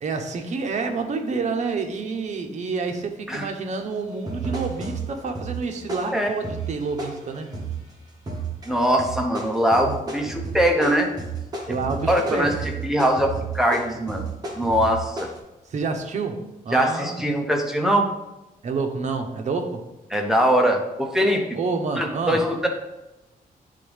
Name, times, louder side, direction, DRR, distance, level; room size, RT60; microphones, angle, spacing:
voice 1, 0.0-7.5 11.7-12.5 14.8-14.9 15.7-17.2 18.6-19.8 21.5-22.4, right 4 dB, 50° right, 4 dB, 0.8 m, -28 dB
sound 1, 3.7-3.9 4.3-7.9 8.3-8.7 9.0-15.4, right 4 dB, 25° right, 1.1 m, -32 dB
voice 2, 8.7-11.1 11.7-11.8 12.1-12.5 12.8-14.3 14.6-15.3 16.7-18.1 20.1-21.4 21.9-22.7, equal, 5° right, 1 dB, 0.7 m, -22 dB
9.6 x 3.5 x 3.4 m, 0.98 s
wide cardioid pair, 175°, 15 cm